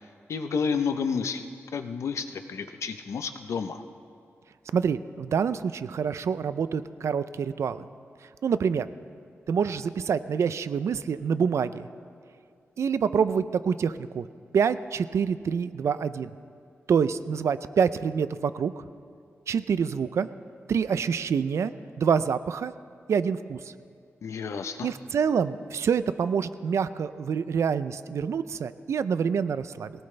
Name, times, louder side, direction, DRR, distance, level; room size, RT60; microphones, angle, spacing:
voice 1, 0.3-3.8 24.2-24.9, left 5 dB, 85° left, 8 dB, 0.9 m, -30 dB
voice 2, 4.7-7.8 8.4-8.9 9.5-11.8 12.8-14.2 14.5-16.3 16.9-18.8 19.5-20.3 20.7-21.7 22.0-22.7 23.1-23.6 24.8-29.9, right 6 dB, 80° right, 13 dB, 0.5 m, -26 dB
22.5 x 18.0 x 3.4 m, 2.4 s
wide cardioid pair, 105°, 5 cm